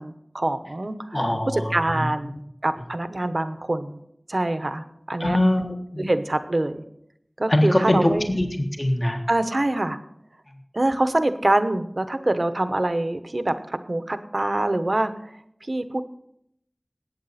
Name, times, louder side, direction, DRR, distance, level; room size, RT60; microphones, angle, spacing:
voice 1, 0.0-1.2 1.5-2.4 2.6-4.0 4.3-5.4 6.0-6.8 7.4-8.3 9.3-10.0 10.7-16.0, right 1 dB, 65° right, 10 dB, 0.9 m, -25 dB
voice 2, 1.1-2.0 5.2-6.1 7.5-8.5 8.8-9.2, left 1 dB, 40° left, 3 dB, 1.5 m, -22 dB
19.0 x 8.5 x 4.2 m, 0.74 s
wide cardioid pair, 40°, 0 cm